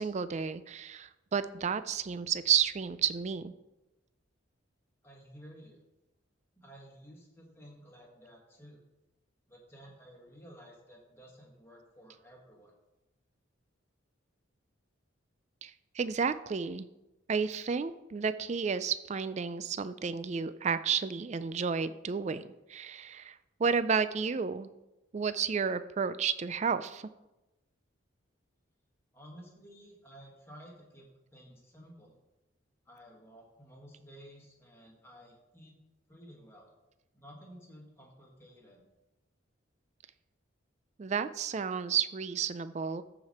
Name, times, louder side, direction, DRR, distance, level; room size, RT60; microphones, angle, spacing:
voice 1, 0.0-3.5 15.6-16.9 17.3-24.7 25.1-27.1 41.0-43.0, right 6 dB, 35° right, 13 dB, 0.3 m, -32 dB
voice 2, 5.0-5.8 6.6-8.8 9.5-12.7 29.1-32.2 32.9-35.8 36.1-36.8 37.1-38.9, equal, 10° left, -2 dB, 1.8 m, -53 dB
14.0 x 5.0 x 4.2 m, 0.99 s
head